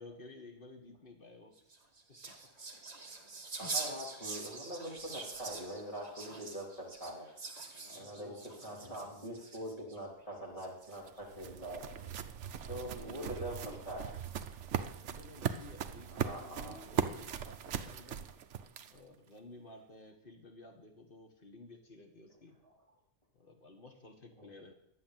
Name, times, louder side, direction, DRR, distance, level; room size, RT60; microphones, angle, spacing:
voice 1, 0.0-1.5 7.7-8.8 12.6-13.8 14.9-18.3 18.9-22.6 23.4-24.7, left 2 dB, 40° left, 4 dB, 1.9 m, -54 dB
sound 1, 1.6-10.0 10.6-11.2, right 3 dB, 30° right, 1.4 m, -44 dB
voice 2, 3.6-7.3 7.9-12.1 12.7-14.1 16.0-16.8 24.4-24.5, right 1 dB, 25° left, -3 dB, 3.8 m, -43 dB
sound 2, 10.6-19.2, right 8 dB, 60° right, 1.0 m, -39 dB
12.0 x 8.5 x 7.7 m, 0.77 s
omnidirectional pair, 1.5 m